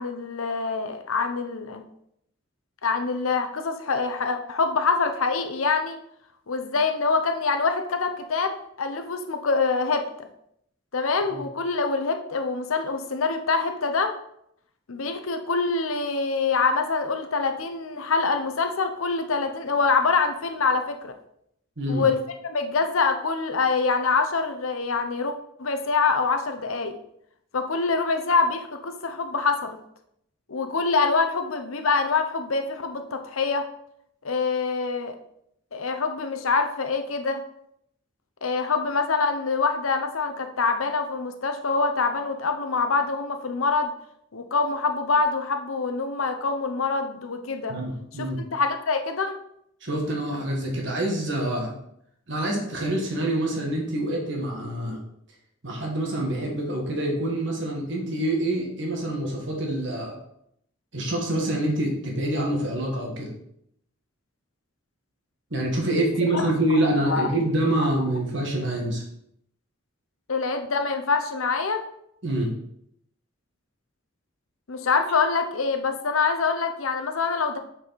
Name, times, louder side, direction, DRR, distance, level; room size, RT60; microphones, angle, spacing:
voice 1, 0.0-1.8 2.8-6.0 6.5-10.3 10.9-14.1 14.9-21.1 21.9-22.2 22.4-25.3 25.6-26.9 27.5-29.8 30.5-33.6 34.2-35.1 35.7-37.4 38.4-43.9 44.3-47.8 48.2-48.3 48.5-49.4 66.3-66.5 67.1-67.2 70.3-71.8 74.7-77.6, left 4 dB, 85° left, 7 dB, 0.8 m, -25 dB
voice 2, 47.7-48.4 49.8-51.7 52.3-55.0 55.6-60.2 60.9-63.3 65.5-69.0 72.2-72.5, right 1 dB, 60° right, -1 dB, 1.8 m, -26 dB
7.6 x 4.8 x 4.2 m, 0.73 s
head